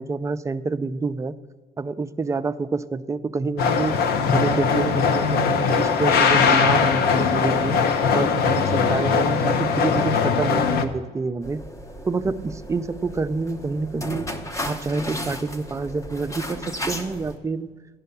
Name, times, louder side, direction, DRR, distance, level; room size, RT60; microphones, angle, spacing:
voice 1, 0.0-1.4 1.8-4.0 4.3-7.8 8.1-11.6 12.0-14.3 14.6-17.7, right 4 dB, 15° right, 11 dB, 0.4 m, -27 dB
sound 1, 3.6-10.9, left 5 dB, 70° left, 0.7 m, -20 dB
sound 2, 11.4-17.4, left 1 dB, 20° left, 0.8 m, -34 dB
10.5 x 5.6 x 6.8 m, 1.5 s
cardioid pair, 110°, 17 cm